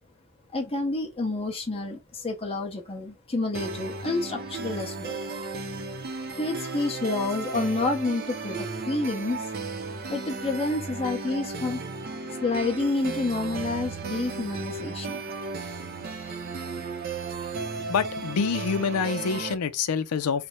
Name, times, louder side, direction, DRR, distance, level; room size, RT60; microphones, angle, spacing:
voice 1, 0.5-5.2 6.4-9.4 10.1-11.8 12.4-15.2, left 2 dB, 25° left, 0.8 m, -29 dB
sound 1, 3.5-19.5, right 3 dB, 45° right, 0.6 m, -35 dB
voice 2, 17.9-20.5, left 6 dB, 85° left, 0.5 m, -26 dB
3.3 x 2.1 x 3.9 m
head